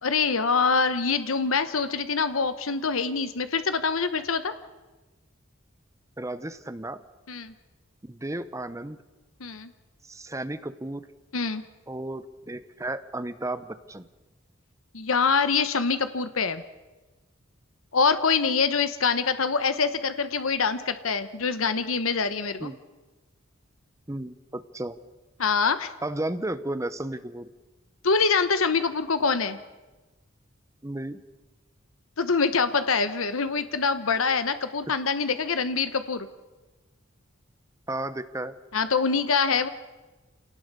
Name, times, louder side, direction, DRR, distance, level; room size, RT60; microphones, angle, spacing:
voice 1, 0.0-4.5 7.3-7.5 9.4-9.7 11.3-11.6 14.9-16.6 17.9-22.7 25.4-25.9 28.0-29.6 32.2-36.3 38.7-39.7, left 5 dB, 90° left, 11 dB, 1.1 m, -25 dB
voice 2, 6.2-7.0 8.0-9.0 10.0-11.1 11.9-14.1 22.6-22.8 24.1-25.0 26.0-27.5 30.8-31.2 37.9-38.5, right 1 dB, 15° right, 13 dB, 0.9 m, -33 dB
27.5 x 18.5 x 6.8 m, 1.2 s
head